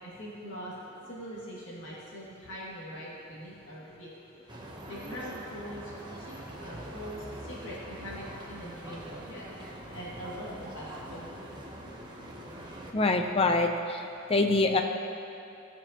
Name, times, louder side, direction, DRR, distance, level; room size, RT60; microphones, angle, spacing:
voice 1, 0.0-0.7 1.1-4.1 4.5-11.6, equal, 70° left, -8 dB, 2.3 m, -43 dB
sound 1, 4.5-12.9, right 1 dB, 20° right, 1.0 m, -44 dB
voice 2, 12.9-14.0 14.3-14.8, left 3 dB, 30° left, 5 dB, 0.6 m, -25 dB
16.5 x 6.9 x 3.0 m, 2.7 s
head